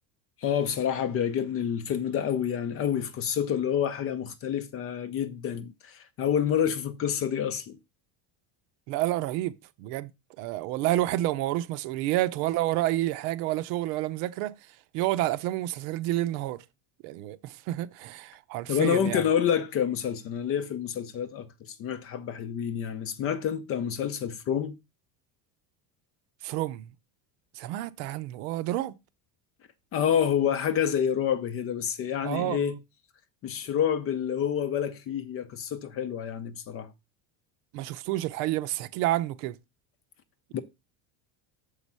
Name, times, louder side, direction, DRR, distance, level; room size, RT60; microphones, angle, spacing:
voice 1, 0.4-7.8 18.7-24.8 29.9-32.8 33.4-36.9 40.5-40.6, left 8 dB, 30° left, 0.5 m, -28 dB
voice 2, 8.9-9.5 9.8-10.1 10.4-14.5 14.9-16.6 17.0-19.2 26.4-26.8 27.6-28.9 32.2-32.7 37.7-39.6, right 15 dB, 75° right, 0.8 m, -29 dB
7.2 x 4.8 x 5.4 m
cardioid pair, 170°, 47 cm